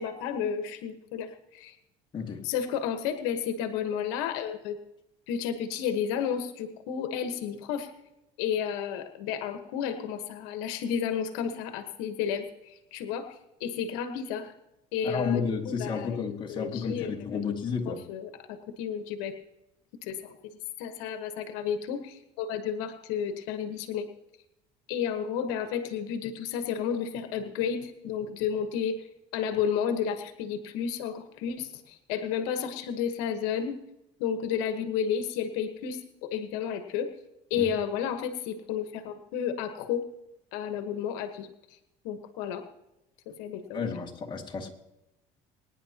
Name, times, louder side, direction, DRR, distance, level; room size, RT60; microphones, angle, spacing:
voice 1, 0.0-1.8 2.4-4.8 5.3-7.9 8.4-13.3 13.6-14.5 14.9-17.4 17.9-19.3 20.0-20.3 20.8-24.1 24.9-29.0 29.3-33.8 34.2-37.1 37.5-40.1 40.5-41.5 42.0-42.6 43.4-43.8, left 8 dB, 90° left, 1.3 m, -32 dB
voice 2, 2.1-2.5 15.0-18.0 37.6-37.7 43.7-44.7, left 6 dB, 30° left, 2.2 m, -31 dB
24.0 x 10.0 x 2.9 m
cardioid pair, 110°, 15 cm